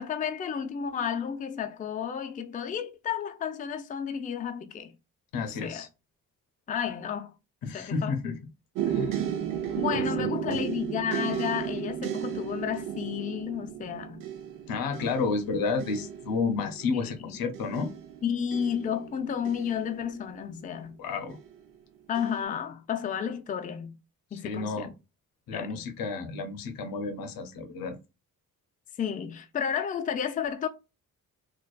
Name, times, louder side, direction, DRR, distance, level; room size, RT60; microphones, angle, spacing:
voice 1, 0.0-4.9 5.4-5.9 6.7-7.3 7.6-8.3 9.8-14.2 17.0-17.1 18.2-21.0 22.1-23.9 24.3-24.9 25.5-25.8 29.0-30.7, left 8 dB, 25° left, 0.4 m, -32 dB
voice 2, 5.3-5.9 7.6-8.4 8.9-9.2 9.9-10.6 14.7-17.9 21.0-21.4 24.3-24.9 25.5-28.0, left 4 dB, 80° left, 0.6 m, -31 dB
sound 1, 8.7-20.6 21.3-21.8 22.1-22.4, right 10 dB, 70° right, 0.6 m, -34 dB
2.3 x 2.3 x 2.3 m
cardioid pair, 75°, 34 cm